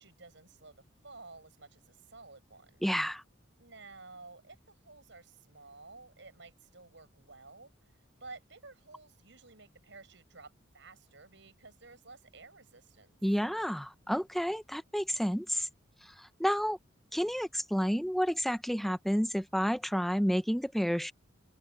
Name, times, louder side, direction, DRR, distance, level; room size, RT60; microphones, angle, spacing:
voice 1, 0.0-2.9 3.6-13.2, right 3 dB, 65° right, 7.7 m, -53 dB
voice 2, 2.8-3.2 13.2-15.7 16.0-16.8 17.1-21.1, equal, ahead, 0.7 m, -30 dB
open air
head